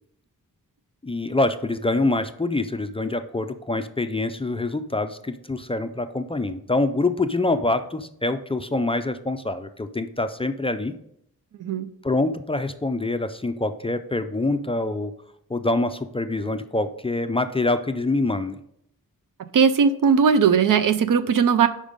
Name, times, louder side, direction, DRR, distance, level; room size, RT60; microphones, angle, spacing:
voice 1, 1.0-10.9 12.0-15.1 15.5-18.6, left 2 dB, 15° left, 9 dB, 0.3 m, -25 dB
voice 2, 19.5-21.7, right 6 dB, 65° right, 12 dB, 0.5 m, -18 dB
5.2 x 5.2 x 5.0 m, 0.73 s
wide cardioid pair, 105°, 35 cm